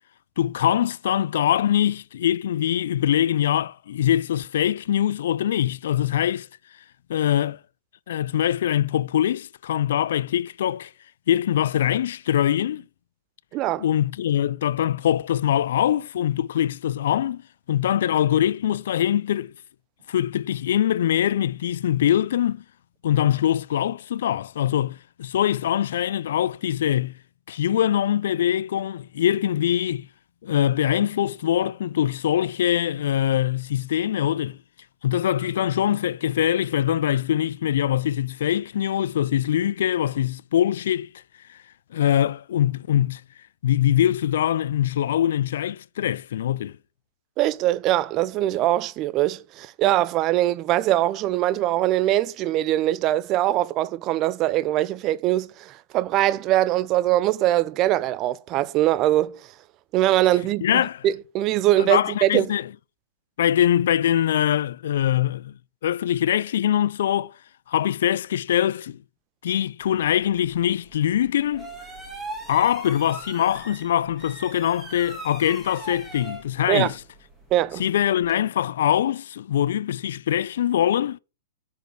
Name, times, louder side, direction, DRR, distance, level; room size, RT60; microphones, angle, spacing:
voice 1, 0.4-6.5 7.1-7.6 8.1-10.9 11.3-12.8 13.8-17.4 17.7-19.5 20.1-22.6 23.0-27.1 27.5-30.1 30.4-34.6 35.0-41.1 41.5-41.6 41.9-43.2 43.6-46.8 60.6-61.0 61.8-62.7 63.4-65.5 65.8-67.3 67.7-69.0 69.4-71.7 72.5-77.0 77.8-81.2, left 11 dB, 65° left, 0.3 m, -23 dB
voice 2, 13.5-13.8 47.4-59.4 59.9-62.5 76.7-76.9 77.5-77.8, right 14 dB, 35° right, 0.4 m, -22 dB
sound 1, 69.8-78.4, right 2 dB, 10° right, 1.9 m, -41 dB
6.5 x 5.1 x 4.7 m
hypercardioid pair, 125°, 0 cm